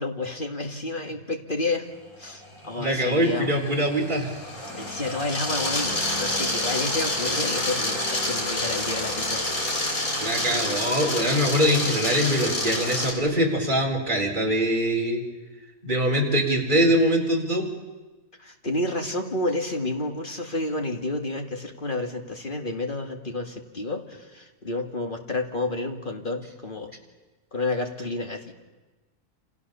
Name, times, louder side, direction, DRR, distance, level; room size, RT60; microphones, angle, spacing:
voice 1, 0.0-1.8 2.2-3.5 4.8-9.4 18.4-26.9 27.5-28.5, left 2 dB, 35° left, 4 dB, 2.3 m, -30 dB
sound 1, 2.6-13.1, left 1 dB, 65° left, 4.8 m, -28 dB
voice 2, 2.8-4.3 10.2-15.2 15.8-17.7, equal, 30° right, 0 dB, 4.5 m, -23 dB
28.0 x 27.0 x 7.0 m, 1.2 s
omnidirectional pair, 1.6 m